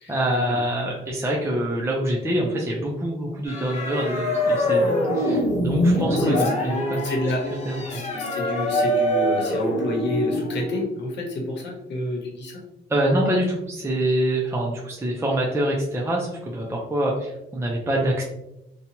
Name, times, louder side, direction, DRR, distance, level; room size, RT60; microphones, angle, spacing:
voice 1, 0.1-7.1 7.7-8.0 12.9-18.2, right 1 dB, 15° right, -2 dB, 0.5 m, -25 dB
sound 1, 3.5-10.8, left 1 dB, 35° left, 0.8 m, -24 dB
voice 2, 6.1-6.5 7.0-7.4 7.9-12.6, left 1 dB, 65° left, 0 dB, 0.9 m, -29 dB
2.7 x 2.2 x 2.8 m, 0.89 s
cardioid pair, 90°, 20 cm